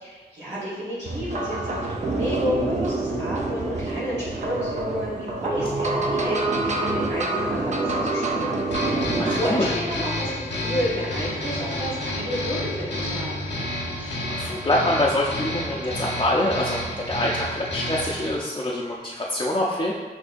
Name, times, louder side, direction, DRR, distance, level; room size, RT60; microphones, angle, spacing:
voice 1, 0.0-13.5, equal, 90° right, -10 dB, 1.4 m, -31 dB
sound 1, 1.0-9.4, right 2 dB, 40° right, 0.6 m, -26 dB
sound 2, 8.7-18.3, left 1 dB, 90° left, 1.2 m, -30 dB
voice 2, 9.2-9.7 14.0-19.9, left 1 dB, 25° left, -5 dB, 0.5 m, -25 dB
6.2 x 2.7 x 2.6 m, 1.4 s
cardioid pair, 55°, 18 cm